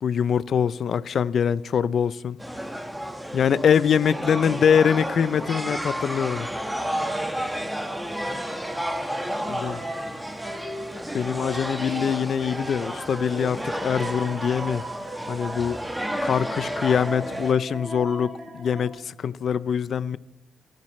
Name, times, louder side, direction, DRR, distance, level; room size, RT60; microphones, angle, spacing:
voice 1, 0.0-2.4 3.3-6.5 9.5-9.8 11.1-14.8 15.3-15.8 16.2-20.2, left 7 dB, 60° left, 0.6 m, -23 dB
sound 1, 2.4-17.5, equal, 5° right, 1.5 m, -32 dB
voice 2, 4.1-9.0 9.6-10.3 16.6-17.4, left 1 dB, 15° left, 7.1 m, -47 dB
sound 2, 8.2-18.9, right 1 dB, 35° right, 5.9 m, -38 dB
29.0 x 11.5 x 3.2 m
cardioid pair, 80°, 0 cm